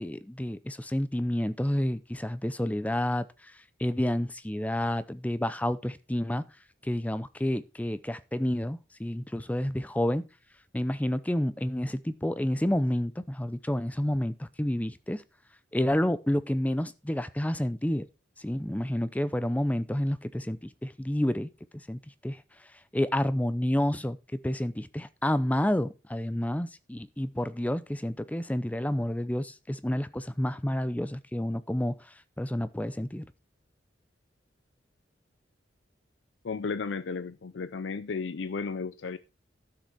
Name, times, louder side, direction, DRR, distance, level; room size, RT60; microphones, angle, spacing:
voice 1, 0.0-3.3 3.8-6.4 6.8-10.2 10.7-15.2 15.7-18.1 18.4-21.5 21.9-22.4 22.9-31.9 32.4-33.3, left 1 dB, 10° left, 0.5 m, -29 dB
voice 2, 36.4-39.2, left 4 dB, 75° left, 0.5 m, -34 dB
11.5 x 6.6 x 4.6 m
head